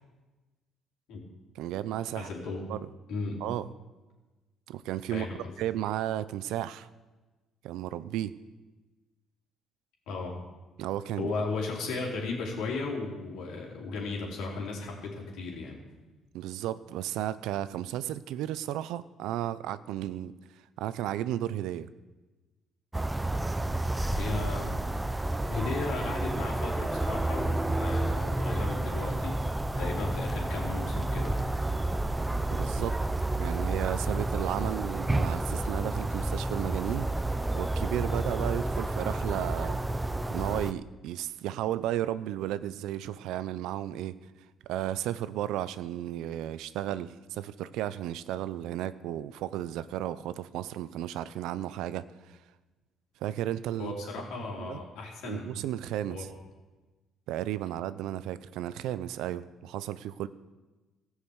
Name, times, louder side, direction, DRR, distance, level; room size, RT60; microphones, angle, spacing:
voice 1, 1.6-2.3 2.7-2.8 3.4-3.7 4.7-5.3 5.6-6.9 7.6-8.3 10.8-11.3 16.3-20.3 20.8-21.9 32.5-33.0 33.4-37.1 37.5-39.8 40.3-44.2 44.7-52.4 53.2-53.9 54.6-54.8 55.2-56.3 57.3-60.3, right 12 dB, 85° right, 15 dB, 0.6 m, -33 dB
voice 2, 2.2-2.6 3.1-3.4 5.1-5.5 10.1-10.4 11.2-15.8 24.1-24.7 25.5-29.4 29.8-31.4 53.8-55.4 56.1-56.2, left 3 dB, 75° left, -2 dB, 3.7 m, -35 dB
sound 1, 22.9-40.7, right 2 dB, 10° right, 0.5 m, -30 dB
15.0 x 6.4 x 8.0 m, 1.2 s
cardioid pair, 95°, 0 cm